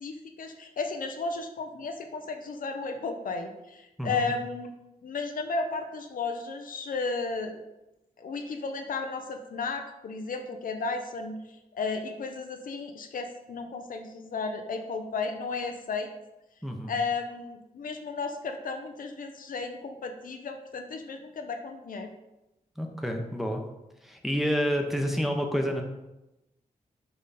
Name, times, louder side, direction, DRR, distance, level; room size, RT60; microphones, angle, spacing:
voice 1, 0.0-4.7 5.0-7.6 8.2-11.4 11.7-16.1 16.9-22.1, left 4 dB, 75° left, 5 dB, 0.7 m, -34 dB
voice 2, 4.0-4.3 16.6-16.9 22.8-23.6 24.0-25.8, equal, ahead, 2 dB, 0.9 m, -29 dB
5.6 x 4.9 x 4.1 m, 0.96 s
wide cardioid pair, 105°, 14 cm